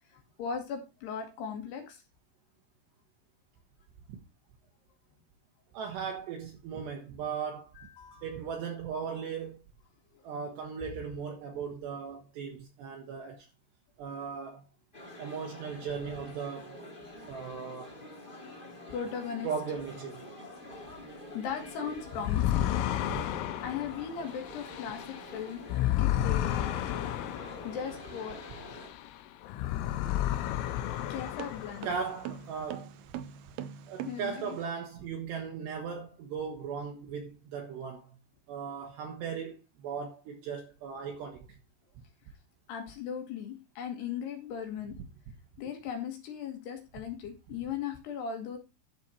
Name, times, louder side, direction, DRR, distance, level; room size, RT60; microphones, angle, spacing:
voice 1, 0.1-2.0 7.8-8.3 10.1-10.2 18.9-19.5 20.9-22.7 23.6-25.6 26.0-27.1 27.6-28.4 28.7-28.8 31.1-31.9 34.1-34.6 42.7-45.0 45.6-48.6, left 7 dB, 65° left, 3.2 m, -38 dB
voice 2, 5.7-7.7 8.2-9.6 10.2-13.5 14.0-14.6 15.2-16.8 17.3-17.9 19.4-20.2 23.1-23.2 31.8-33.2 33.9-38.2 38.5-41.5, right 6 dB, 70° right, 3.0 m, -37 dB
sound 1, 14.9-28.9, left 1 dB, 20° left, 1.2 m, -47 dB
sound 2, 22.2-29.1 29.4-32.1, left 12 dB, 85° left, 3.6 m, -32 dB
sound 3, 29.9-34.7, right 9 dB, 90° right, 2.2 m, -43 dB
11.5 x 7.1 x 4.3 m
omnidirectional pair, 5.9 m